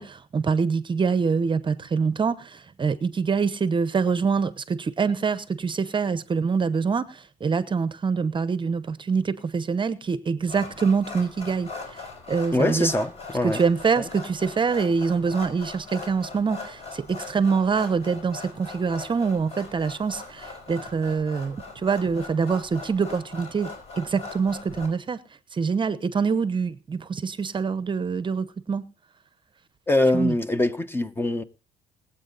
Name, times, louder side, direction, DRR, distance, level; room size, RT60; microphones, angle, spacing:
voice 1, 0.0-12.9 13.4-25.2 25.5-28.8 30.1-30.3, right 5 dB, 30° right, 0.8 m, -25 dB
sound 1, 10.5-24.9, left 3 dB, 40° left, 5.4 m, -40 dB
voice 2, 12.5-13.6 14.0-14.1 29.9-31.4, left 1 dB, 15° left, 1.0 m, -23 dB
20.5 x 8.4 x 4.0 m
cardioid pair, 110°, 17 cm